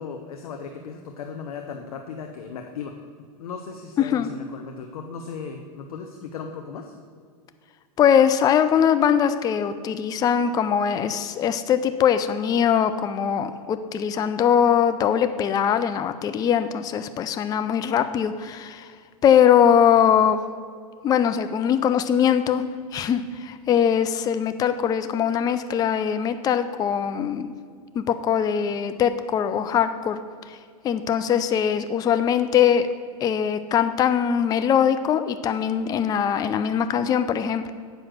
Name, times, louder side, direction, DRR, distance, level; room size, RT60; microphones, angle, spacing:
voice 1, 0.0-3.0 3.4-6.9, left 6 dB, 70° left, 4 dB, 0.8 m, -36 dB
voice 2, 8.0-18.9 19.2-20.4 21.0-22.6 22.9-27.5 27.9-30.2 30.5-30.6 30.8-32.9 33.2-37.7, left 8 dB, 20° left, 10 dB, 0.4 m, -21 dB
7.9 x 5.8 x 6.5 m, 2.1 s
hypercardioid pair, 110°, 19 cm